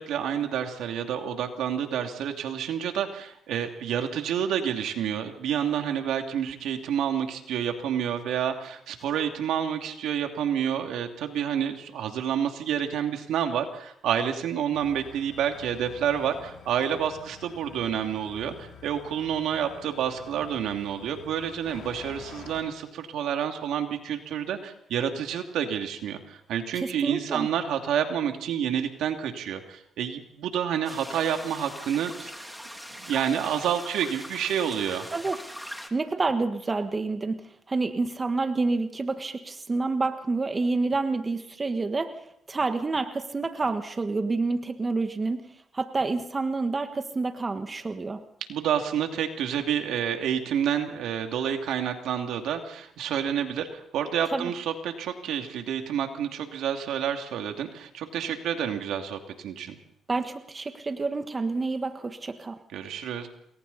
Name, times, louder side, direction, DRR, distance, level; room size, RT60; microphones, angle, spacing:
voice 1, 0.0-32.4 33.0-35.1 48.5-59.8 62.7-63.3, right 9 dB, 80° right, 4 dB, 2.6 m, -29 dB
sound 1, 14.7-22.6, left 6 dB, 65° left, 5.9 m, -48 dB
voice 2, 26.7-27.5 35.1-35.4 35.9-45.4 45.7-48.2 54.3-54.5 60.1-62.6, right 3 dB, 30° right, 7 dB, 1.5 m, -28 dB
sound 2, 30.8-35.9, equal, ahead, 2.7 m, -41 dB
28.5 x 21.5 x 4.2 m, 0.71 s
cardioid pair, 90°, 0 cm